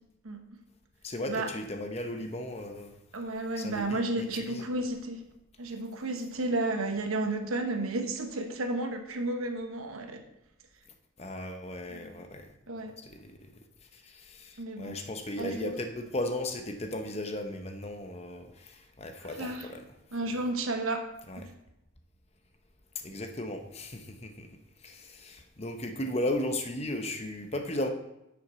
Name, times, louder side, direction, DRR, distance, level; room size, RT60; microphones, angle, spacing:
voice 1, 1.0-2.9 3.6-4.7 11.2-12.4 13.1-13.3 14.3-14.5 14.8-18.5 19.0-19.8 21.3-21.4 23.0-24.5 24.8-27.9, left 1 dB, 30° left, 5 dB, 0.8 m, -35 dB
voice 2, 3.1-5.2 5.6-10.2 11.9-12.2 12.7-12.9 14.6-15.0 15.4-15.7 19.2-19.7 20.1-21.0 21.3-21.4, right 2 dB, 90° right, 5 dB, 1.1 m, -32 dB
10.0 x 5.9 x 4.2 m, 0.87 s
head